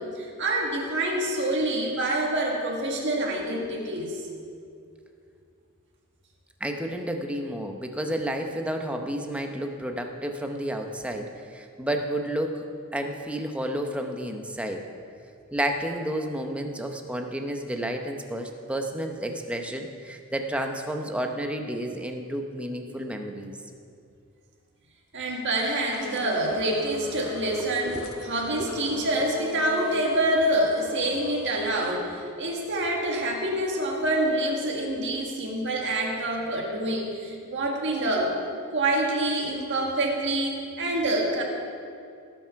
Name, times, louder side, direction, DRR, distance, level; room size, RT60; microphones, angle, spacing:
voice 1, 0.0-4.2 25.1-38.3 38.7-41.4, right 1 dB, 55° right, -1 dB, 1.8 m, -26 dB
voice 2, 6.6-12.7 12.9-14.8 15.5-23.6 27.9-28.1 28.6-28.7, right 1 dB, 5° right, 3 dB, 0.7 m, -31 dB
sound 1, 25.9-31.9, left 3 dB, 75° left, 1.1 m, -39 dB
17.5 x 6.0 x 5.7 m, 2.4 s
head